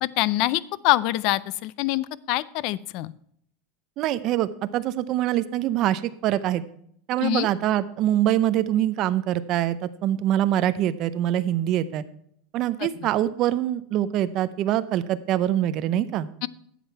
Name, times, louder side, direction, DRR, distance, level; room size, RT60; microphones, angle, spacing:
voice 1, 0.0-3.1 7.2-7.5 12.8-13.1 16.4-16.5, left 16 dB, 40° left, 20 dB, 0.4 m, -25 dB
voice 2, 4.0-6.6 7.1-12.0 12.5-16.3, right 12 dB, 30° right, 13 dB, 0.6 m, -24 dB
12.0 x 7.6 x 4.6 m, 0.67 s
supercardioid pair, 180°, 0 cm